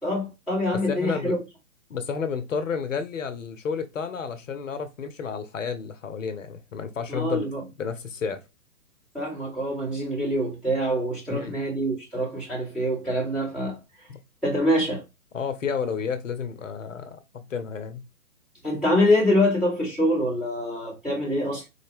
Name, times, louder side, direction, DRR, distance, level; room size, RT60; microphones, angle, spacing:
voice 1, 0.0-1.4 7.1-7.6 9.1-13.8 14.4-15.0 18.6-21.7, left 1 dB, ahead, 0.8 m, -25 dB
voice 2, 0.9-1.3 1.9-7.5 7.8-8.4 11.3-11.6 14.1-14.2 15.3-18.0, left 6 dB, 55° left, 0.7 m, -31 dB
3.8 x 2.1 x 3.3 m
figure-of-eight pair, 130°, 45 cm